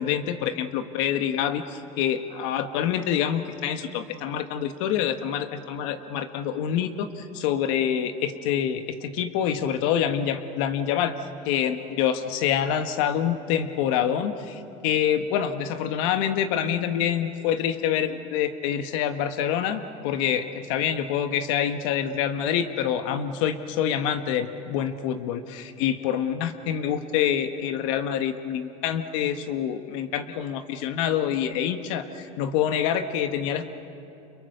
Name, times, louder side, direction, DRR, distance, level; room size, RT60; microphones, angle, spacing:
voice 1, 0.0-11.1 11.4-33.7, left 9 dB, 75° left, 8 dB, 1.4 m, -26 dB
29.5 x 28.5 x 6.7 m, 2.8 s
supercardioid pair, 95°, 16 cm